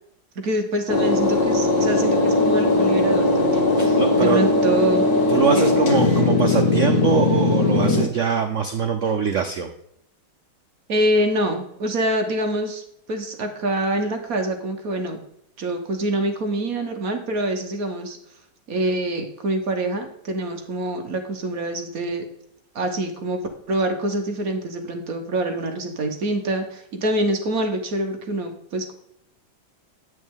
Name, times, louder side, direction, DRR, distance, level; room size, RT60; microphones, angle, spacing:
voice 1, 0.4-5.1 5.5-5.8 10.9-15.2 15.6-18.2 18.7-22.2 22.7-23.4 23.7-28.9, right 1 dB, 55° right, 5 dB, 1.3 m, -25 dB
sound 1, 0.9-8.1, left 2 dB, 65° left, 2.1 m, -19 dB
voice 2, 3.8-4.4 5.3-9.7, right 7 dB, 90° right, 6 dB, 0.6 m, -23 dB
9.3 x 6.2 x 3.6 m, 0.76 s
omnidirectional pair, 2.2 m